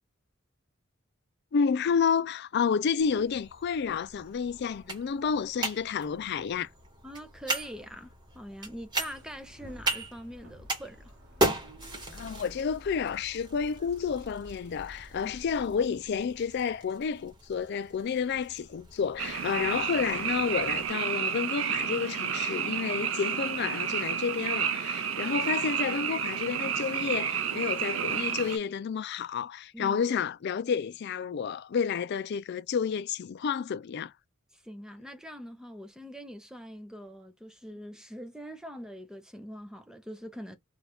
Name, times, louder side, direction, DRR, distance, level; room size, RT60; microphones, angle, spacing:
voice 1, 1.5-6.7 12.1-34.1, left 6 dB, 55° left, 0.4 m, -30 dB
sound 1, 3.0-20.9, right 2 dB, 20° right, 1.1 m, -38 dB
voice 2, 7.0-11.1 15.2-15.3 29.7-30.0 34.5-40.6, equal, 5° right, 0.5 m, -43 dB
sound 2, 8.9-16.0, equal, 65° right, 1.0 m, -51 dB
Frog, 19.2-28.6, right 8 dB, 85° right, 0.5 m, -31 dB
2.7 x 2.4 x 3.3 m
head